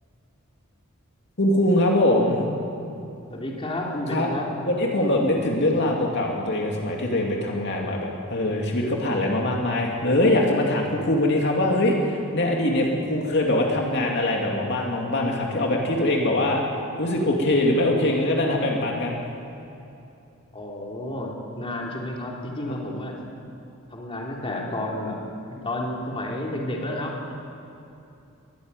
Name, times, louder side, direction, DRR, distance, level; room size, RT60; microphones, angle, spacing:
voice 1, 1.4-2.4 4.1-4.3 4.6-16.6 17.0-19.1, left 1 dB, 55° left, -1 dB, 2.6 m, -22 dB
voice 2, 3.3-4.5 20.5-23.1 23.9-25.2 25.5-27.3, left 1 dB, 25° left, -2 dB, 3.2 m, -31 dB
22.5 x 14.5 x 9.8 m, 2.8 s
head